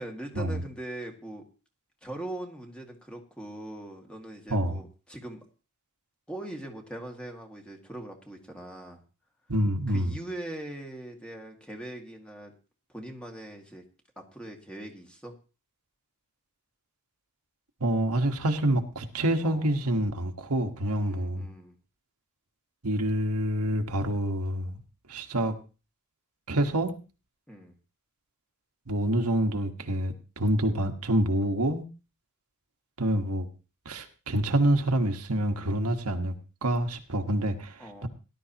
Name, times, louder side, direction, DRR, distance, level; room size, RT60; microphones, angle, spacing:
voice 1, 0.0-1.4 2.0-5.4 6.3-9.0 9.9-12.5 12.9-13.8 14.2-15.4 19.4-19.7 21.0-21.7 27.5-27.7 37.8-38.1, right 1 dB, 5° left, 2 dB, 2.1 m, -41 dB
voice 2, 9.5-10.2 17.8-21.5 22.8-24.8 25.1-25.5 26.5-26.9 28.9-31.8 33.0-33.5 33.8-36.3 36.6-38.1, right 1 dB, 80° right, 4 dB, 1.5 m, -27 dB
18.0 x 11.5 x 3.0 m, 0.34 s
head